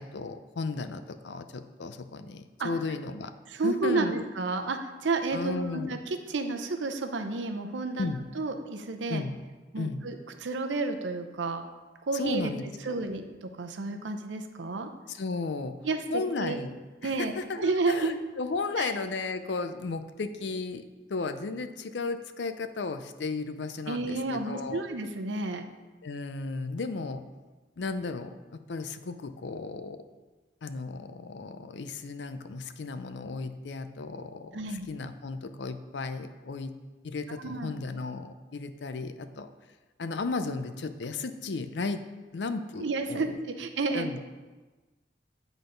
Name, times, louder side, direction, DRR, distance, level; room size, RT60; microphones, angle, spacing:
voice 1, 0.0-3.3 3.6-4.1 5.3-6.0 8.0-8.2 9.1-9.3 9.8-10.0 12.1-13.0 15.1-15.8 16.1-24.9 26.0-27.2 27.8-30.0 30.6-36.7 37.0-39.5 40.0-42.0 42.3-43.4 43.9-44.2, left 3 dB, 75° left, 10 dB, 0.5 m, -34 dB
voice 2, 3.5-9.2 9.7-10.2 10.4-11.6 12.1-12.5 12.9-14.9 15.8-16.6 17.0-17.3 17.6-18.1 18.8-18.9 23.9-25.7 34.5-34.8 37.4-37.8 42.8-44.2, right 3 dB, 85° right, 6 dB, 0.7 m, -31 dB
8.8 x 4.0 x 5.1 m, 1.2 s
head